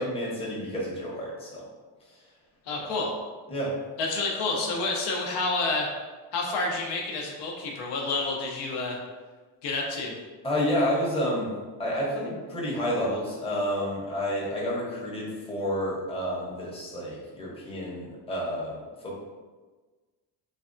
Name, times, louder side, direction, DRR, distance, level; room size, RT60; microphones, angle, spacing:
voice 1, 0.0-1.6 3.5-3.7 10.4-18.8 19.0-19.2, equal, 15° left, -5 dB, 0.7 m, -30 dB
voice 2, 2.7-3.1 4.0-5.9 6.3-9.0 9.6-10.1, left 3 dB, 75° left, 0 dB, 0.7 m, -29 dB
3.3 x 2.2 x 2.5 m, 1.3 s
cardioid pair, 120°, 41 cm